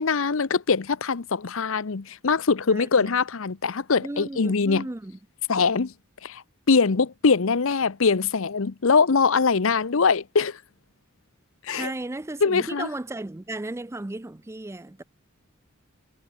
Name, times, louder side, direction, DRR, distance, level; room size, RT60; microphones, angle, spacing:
voice 1, 0.0-4.9 5.5-5.9 6.2-10.6 11.6-11.9 12.4-12.9, left 5 dB, 65° left, 0.7 m, -22 dB
voice 2, 2.7-3.1 4.0-5.2 11.7-15.0, right 2 dB, 15° right, 0.4 m, -35 dB
head